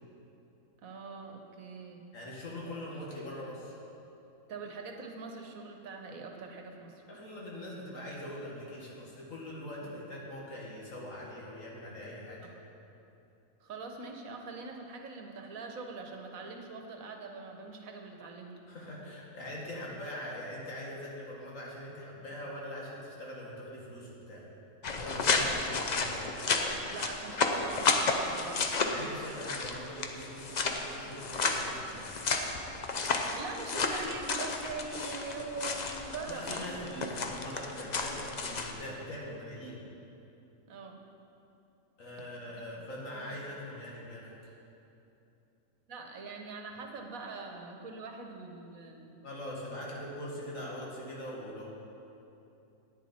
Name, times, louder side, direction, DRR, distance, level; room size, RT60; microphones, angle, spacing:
voice 1, 0.8-2.0 4.5-7.0 9.8-10.0 12.4-12.5 13.6-18.5 25.4-25.6 26.9-28.8 33.3-36.7 40.7-41.0 42.6-42.7 43.1-43.4 45.9-49.2, right 4 dB, 75° right, 3 dB, 1.4 m, -43 dB
voice 2, 2.1-3.8 7.1-12.5 18.7-24.4 25.0-26.3 28.8-32.1 36.3-39.8 42.0-44.3 49.2-51.7, left 1 dB, 65° left, -4 dB, 2.2 m, -42 dB
sound 1, 24.8-38.7, left 4 dB, 45° left, 0.6 m, -32 dB
10.5 x 9.6 x 4.3 m, 2.9 s
omnidirectional pair, 1.5 m